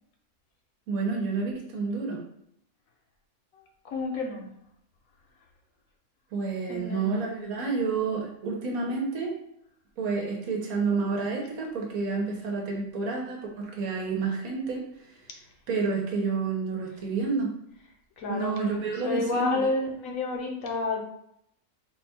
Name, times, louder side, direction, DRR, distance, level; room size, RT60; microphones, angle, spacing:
voice 1, 0.9-2.2 6.3-9.3 10.0-15.2 15.7-17.5 18.3-19.6, right 4 dB, 85° right, 0 dB, 1.4 m, -29 dB
voice 2, 3.5-4.5 6.6-7.4 18.2-21.0, left 3 dB, 75° left, 1 dB, 1.2 m, -31 dB
4.2 x 2.3 x 4.2 m, 0.74 s
omnidirectional pair, 1.5 m